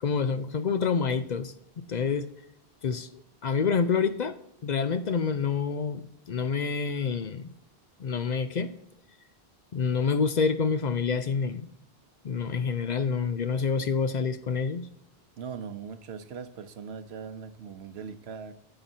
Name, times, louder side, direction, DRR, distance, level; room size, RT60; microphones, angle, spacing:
voice 1, 0.0-2.3 2.8-4.4 4.6-7.5 8.0-8.7 9.7-11.7 12.2-14.9, left 5 dB, 55° left, 0.6 m, -27 dB
voice 2, 15.4-18.5, right 6 dB, 90° right, 1.1 m, -40 dB
16.5 x 5.8 x 2.7 m
omnidirectional pair, 1.0 m